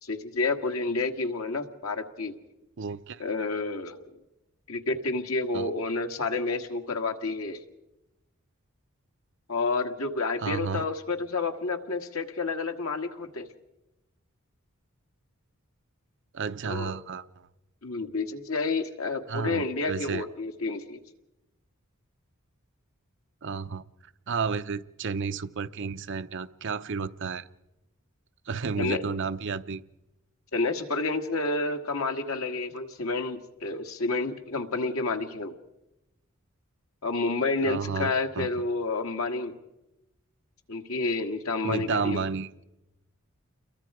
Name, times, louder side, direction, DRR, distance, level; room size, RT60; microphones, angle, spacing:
voice 1, 0.0-2.3 3.2-4.0 4.7-7.6 9.5-13.5 16.6-16.9 17.8-21.0 28.8-29.0 30.5-35.5 37.0-39.6 40.7-42.3, left 3 dB, 80° left, 1.7 m, -29 dB
voice 2, 2.8-3.2 5.5-5.7 10.4-10.9 16.3-17.3 19.3-20.2 23.4-23.8 24.3-27.4 28.5-29.8 37.6-38.5 41.6-42.5, right 5 dB, 60° right, 0.7 m, -32 dB
29.0 x 22.5 x 4.9 m
head